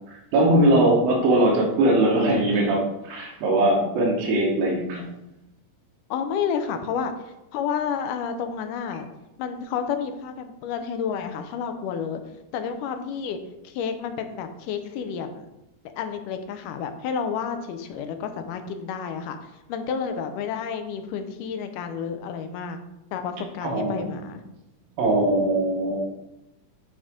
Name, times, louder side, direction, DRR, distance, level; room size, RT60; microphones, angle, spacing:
voice 1, 0.1-5.0 23.6-24.1 25.0-26.0, right 1 dB, 80° right, -2 dB, 3.2 m, -21 dB
voice 2, 6.1-9.1 9.4-12.2 12.5-13.4 13.6-15.5 16.0-19.4 19.7-22.8 23.1-24.4, left 7 dB, 80° left, 7 dB, 2.1 m, -30 dB
11.0 x 4.0 x 3.7 m, 0.91 s
omnidirectional pair, 4.0 m